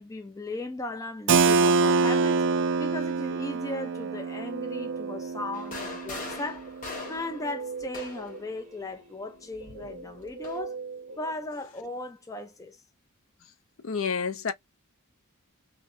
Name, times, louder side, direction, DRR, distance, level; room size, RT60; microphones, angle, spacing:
voice 1, 0.0-2.4 2.8-6.7 7.1-10.8 11.2-12.8, left 2 dB, 15° left, 0.4 m, -37 dB
Keyboard (musical), 1.3-6.8, right 4 dB, 55° right, 0.3 m, -26 dB
Guitar, 3.4-5.9 6.6-12.1, right 4 dB, 35° right, 0.9 m, -42 dB
sound 1, 5.5-8.4 9.5-10.6, left 3 dB, 35° left, 1.0 m, -41 dB
voice 2, 13.8-14.5, left 5 dB, 60° left, 0.6 m, -29 dB
2.7 x 2.2 x 2.4 m
head